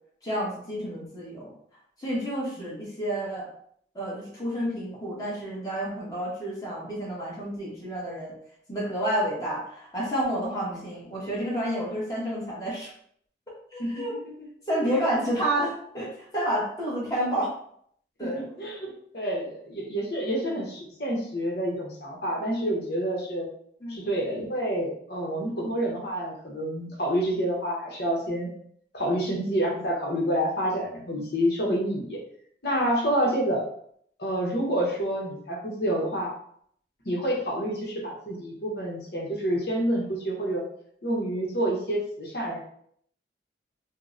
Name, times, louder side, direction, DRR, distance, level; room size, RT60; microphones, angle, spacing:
voice 1, 0.2-1.5 2.0-3.5 3.9-8.3 8.7-12.9 13.7-14.1 14.7-17.5 18.2-18.5 23.8-24.1, right 1 dB, 20° left, -5 dB, 1.0 m, -30 dB
voice 2, 18.6-23.5 23.9-28.5 28.9-32.2 32.6-33.7 34.2-36.3 37.0-40.6 41.0-42.6, equal, 65° left, -2 dB, 0.9 m, -28 dB
2.8 x 2.0 x 3.6 m, 0.65 s
head